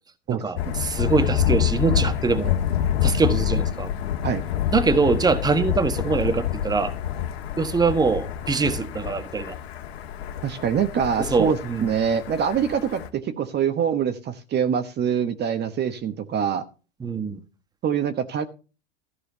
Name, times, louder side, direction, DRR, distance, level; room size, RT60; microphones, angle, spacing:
voice 1, 0.3-2.6 3.0-3.9 4.7-6.9 7.6-9.5 11.2-11.9 17.0-17.4, right 4 dB, 10° right, 1.4 m, -23 dB
Thunder, 0.6-13.1, left 10 dB, 75° left, 1.8 m, -27 dB
voice 2, 10.4-16.6 17.8-18.5, right 8 dB, 35° right, 1.2 m, -24 dB
14.0 x 4.9 x 6.8 m
hypercardioid pair, 100°, 31 cm